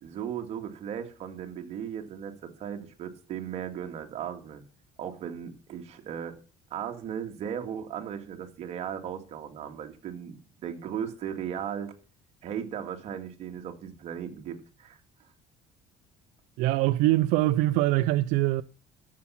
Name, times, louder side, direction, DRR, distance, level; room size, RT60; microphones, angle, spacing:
voice 1, 0.0-4.7 5.0-6.4 6.7-11.9 12.4-15.0, right 8 dB, 55° right, 2.0 m, -37 dB
voice 2, 16.6-18.6, right 16 dB, 90° right, 0.4 m, -23 dB
13.5 x 7.3 x 5.8 m
cardioid pair, 125°, 13 cm